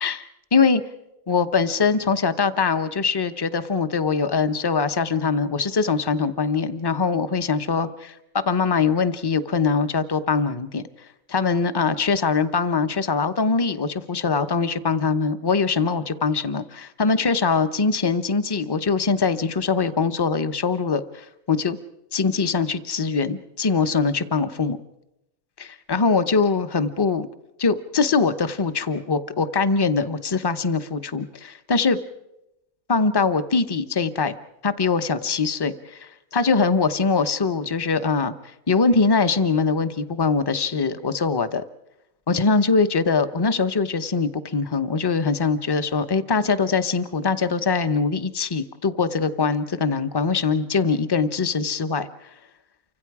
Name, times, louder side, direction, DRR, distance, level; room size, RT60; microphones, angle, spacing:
voice 1, 0.0-0.8 1.3-8.1 8.4-10.8 11.3-21.8 22.1-24.8 25.6-27.3 27.6-32.0 32.9-34.3 34.6-38.3 38.7-41.6 42.3-52.1, left 4 dB, 20° left, 10 dB, 0.7 m, -22 dB
29.0 x 25.5 x 4.9 m, 0.89 s
omnidirectional pair, 1.6 m